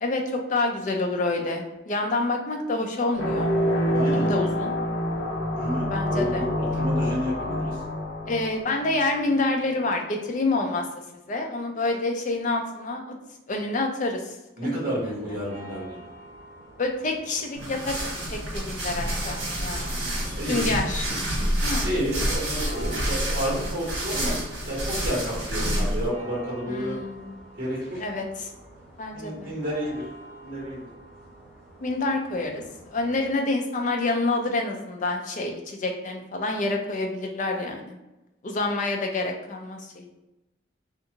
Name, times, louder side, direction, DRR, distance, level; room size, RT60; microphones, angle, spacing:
voice 1, 0.0-3.5 4.1-4.7 5.8-6.4 8.3-10.8 11.3-13.0 13.5-14.3 14.6-15.1 16.8-18.0 18.3-20.1 20.5-21.1 21.6-22.1 26.7-27.3 28.0-28.5 29.0-29.5 31.8-32.6 32.9-38.0 38.4-40.1, left 2 dB, 40° left, 3 dB, 0.4 m, -28 dB
sound 1, 3.1-9.3, equal, 85° left, 0.7 m, -27 dB
voice 2, 3.9-4.3 5.5-6.5 6.8-7.8 14.6-16.0 20.0-20.7 21.8-24.4 24.6-27.0 27.6-28.0 29.1-30.0 30.4-30.8, equal, 45° right, -6 dB, 1.2 m, -30 dB
sound 2, 14.9-33.3, right 1 dB, 20° right, 1.3 m, -47 dB
sound 3, 17.5-26.1, right 1 dB, 70° right, 1.1 m, -28 dB
2.5 x 2.4 x 2.8 m, 0.98 s
head